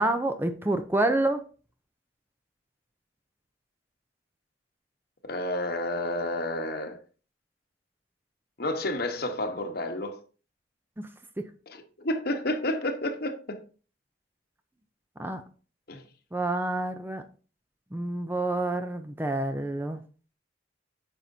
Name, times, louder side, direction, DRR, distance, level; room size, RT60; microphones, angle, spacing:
voice 1, 0.0-1.4 11.0-11.1 11.4-11.5 15.2-15.4 16.3-17.2 17.9-20.0, right 2 dB, 10° right, 0.5 m, -28 dB
voice 2, 5.2-7.0 8.6-10.2 11.7-13.6 15.9-16.0, left 1 dB, 55° left, 1.1 m, -30 dB
9.0 x 5.9 x 2.7 m
head